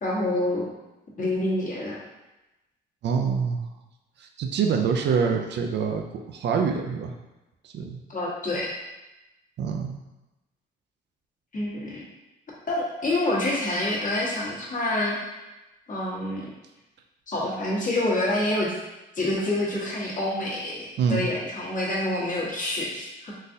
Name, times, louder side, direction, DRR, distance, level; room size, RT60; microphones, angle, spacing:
voice 1, 0.0-0.6 1.2-2.0 8.1-8.7 11.5-12.0 12.7-15.2 15.9-16.5 17.3-18.8 19.1-23.3, left 1 dB, 40° left, -5 dB, 1.1 m, -27 dB
voice 2, 3.0-3.6 4.2-7.1 7.6-8.0 9.6-10.0 21.0-21.3, right 6 dB, 60° right, 3 dB, 0.4 m, -25 dB
3.8 x 2.6 x 2.6 m, 1.0 s
cardioid pair, 90°, 20 cm